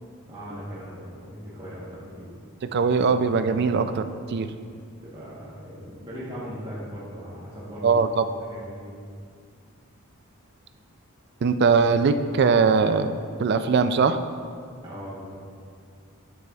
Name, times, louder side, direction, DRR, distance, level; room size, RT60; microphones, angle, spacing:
voice 1, 0.3-2.3 5.0-8.0 8.5-9.0 14.8-15.4, equal, 25° right, -9 dB, 1.1 m, -39 dB
voice 2, 2.7-4.5 7.8-8.3 11.4-13.1 13.4-14.2, right 5 dB, 50° right, 10 dB, 0.3 m, -21 dB
9.3 x 7.7 x 2.4 m, 2.2 s
head